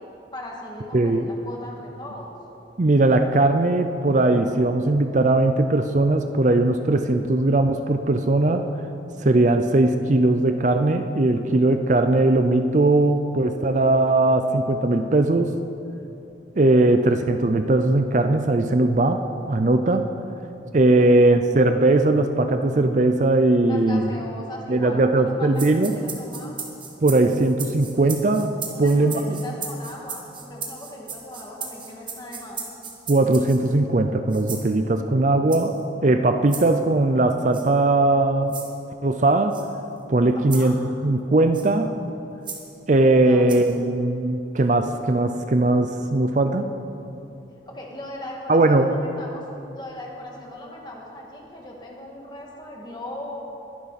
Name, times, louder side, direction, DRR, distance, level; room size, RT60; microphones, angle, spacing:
voice 1, 0.3-2.4 23.7-26.6 28.7-32.6 40.3-40.8 43.2-43.9 47.7-49.4 49.7-53.4, left 1 dB, 25° left, -2 dB, 2.0 m, -38 dB
voice 2, 0.9-1.3 2.8-8.6 9.2-15.5 16.6-20.1 20.7-24.1 24.7-26.0 27.0-28.5 28.8-29.4 33.1-35.7 36.0-38.5 39.0-39.6 40.1-40.8 41.0-41.9 42.9-46.7 48.5-48.9, right 2 dB, 40° right, 7 dB, 0.5 m, -19 dB
sound 1, 25.5-33.7 34.3-34.7 35.5-35.8 36.5-36.7 37.5-37.7 38.5-38.7 39.5-39.6 40.5-40.7 41.5-41.7 42.4-42.6 43.5-43.7, right 5 dB, 25° right, 1.5 m, -36 dB
22.0 x 11.0 x 4.2 m, 2.8 s
head